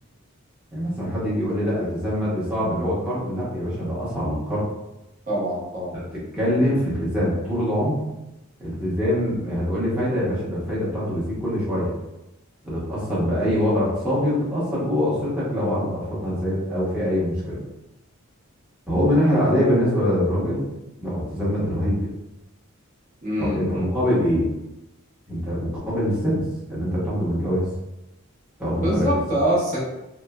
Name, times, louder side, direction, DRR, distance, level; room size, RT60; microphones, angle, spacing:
voice 1, 0.7-4.6 5.9-6.0 6.3-8.0 8.6-11.9 12.6-17.6 18.9-20.6 21.0-22.1 23.4-24.5 25.3-27.7 28.6-29.1, equal, 5° right, -10 dB, 0.8 m, -24 dB
voice 2, 5.3-5.9 23.2-23.9 28.8-29.8, right 1 dB, 35° right, -7 dB, 0.8 m, -24 dB
3.0 x 2.1 x 2.2 m, 0.95 s
head